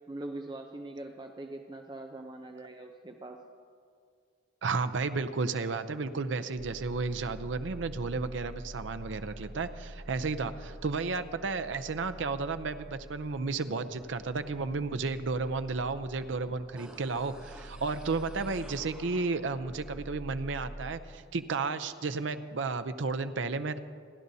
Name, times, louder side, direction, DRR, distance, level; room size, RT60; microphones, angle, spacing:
voice 1, 0.1-3.4, right 2 dB, 20° right, 4 dB, 0.5 m, -42 dB
voice 2, 4.6-23.8, right 4 dB, 80° right, 10 dB, 0.6 m, -33 dB
sound 1, 16.8-20.9, right 1 dB, 75° left, 1.2 m, -47 dB
sound 2, 16.8-19.7 20.1-20.2, right 1 dB, 5° right, 1.2 m, -52 dB
29.0 x 11.5 x 2.7 m, 2.2 s
head